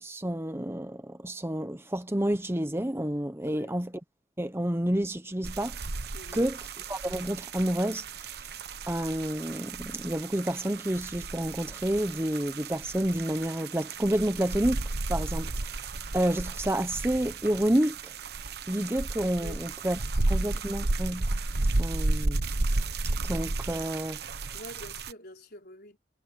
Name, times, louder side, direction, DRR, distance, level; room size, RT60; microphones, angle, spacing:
voice 1, 0.0-3.9 4.4-5.8 6.3-6.6 6.9-8.4 8.9-15.8 16.1-18.2 18.7-20.0 20.3-21.3 21.8-22.4 23.2-24.2, right 1 dB, 15° right, 0.9 m, -29 dB
voice 2, 3.4-3.8 6.1-6.5 19.4-19.7 20.1-20.4 24.5-26.0, left 1 dB, 60° left, 5.1 m, -47 dB
sound 1, 5.4-25.1, right 2 dB, 60° right, 1.1 m, -33 dB
head